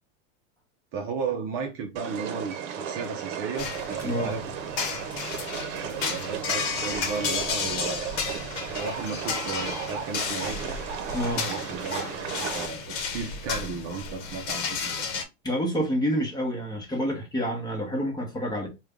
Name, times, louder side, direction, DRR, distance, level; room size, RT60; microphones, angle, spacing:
voice 1, 0.9-4.7 5.7-8.3 8.8-10.6 11.4-12.1 12.4-14.9, right 5 dB, 35° right, 0.6 m, -34 dB
sound 1, 2.0-12.7, right 8 dB, 65° right, 0.8 m, -35 dB
sound 2, 3.6-15.2, left 5 dB, 45° left, 1.0 m, -32 dB
voice 2, 11.1-11.5 15.4-18.7, equal, 10° left, 0.9 m, -28 dB
3.3 x 2.3 x 3.5 m
supercardioid pair, 145°, 38 cm